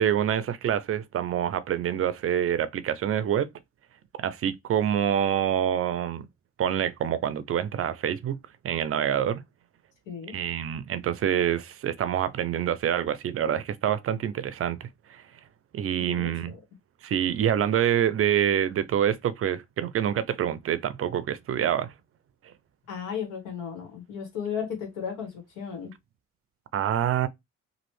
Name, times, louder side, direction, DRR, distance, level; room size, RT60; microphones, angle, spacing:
voice 1, 0.0-3.5 4.2-6.3 6.6-8.4 8.6-9.4 10.3-15.2 15.7-16.5 17.0-21.9 26.7-27.3, right 9 dB, 50° right, 0.4 m, -26 dB
voice 2, 10.1-10.4 16.0-16.6 22.9-25.9, left 7 dB, 90° left, 1.5 m, -35 dB
3.0 x 2.5 x 3.1 m
cardioid pair, 90°, 30 cm